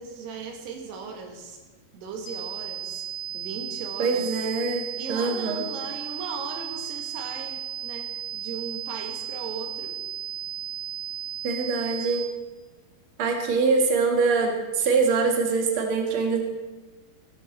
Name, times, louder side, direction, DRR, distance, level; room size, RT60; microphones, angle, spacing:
voice 1, 0.0-1.6 1.9-3.1 3.3-4.3 5.0-10.0, right 5 dB, 85° right, 3 dB, 3.6 m, -38 dB
sound 1, 2.3-12.3, right 10 dB, 50° left, 1.8 m, -35 dB
voice 2, 4.0-5.6 11.4-12.2 13.2-16.4, right 4 dB, 50° right, 2 dB, 1.6 m, -24 dB
16.5 x 9.3 x 4.3 m, 1.2 s
omnidirectional pair, 4.7 m